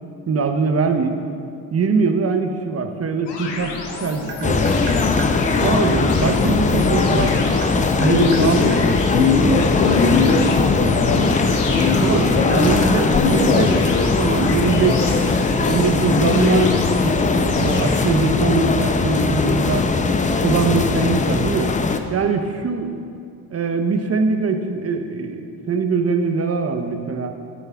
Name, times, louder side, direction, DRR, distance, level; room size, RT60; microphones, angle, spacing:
voice 1, 0.3-1.2 1.7-3.7 4.0-4.7 5.6-7.4 7.9-8.6 12.0-15.2 15.6-19.9 20.4-21.8 22.1-23.0 23.5-27.3, right 4 dB, 30° right, 7 dB, 0.8 m, -22 dB
sound 1, 3.3-18.0, left 3 dB, 60° left, 1.5 m, -29 dB
Tap, 3.5-5.3 6.7-8.8 9.6-11.7 12.0-14.0, right 5 dB, 85° right, 0.9 m, -37 dB
sound 2, 4.4-22.0, left 4 dB, 15° left, 0.5 m, -20 dB
voice 2, 8.0-8.8 9.1-11.3 11.7-12.7 13.1-13.7, left 3 dB, 90° left, 4 dB, 0.8 m, -20 dB
12.0 x 8.5 x 2.4 m, 2.3 s
hypercardioid pair, 50°, 47 cm